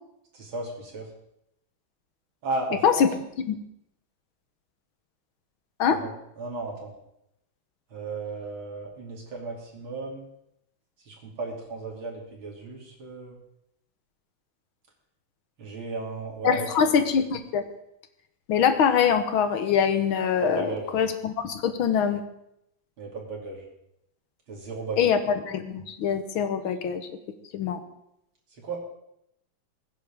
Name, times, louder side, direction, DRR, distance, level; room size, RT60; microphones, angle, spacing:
voice 1, 0.3-1.1 2.4-3.0 5.9-6.1 6.4-6.9 7.9-10.2 11.1-13.4 15.6-16.7 20.4-21.1 23.0-23.6 24.5-25.1 28.6-28.8, right 3 dB, 90° right, -2 dB, 3.7 m, -35 dB
voice 2, 16.4-17.6 18.5-22.2 25.0-27.1 27.5-27.8, left 7 dB, 85° left, 8 dB, 1.9 m, -23 dB
20.5 x 10.0 x 3.6 m, 0.81 s
omnidirectional pair, 2.2 m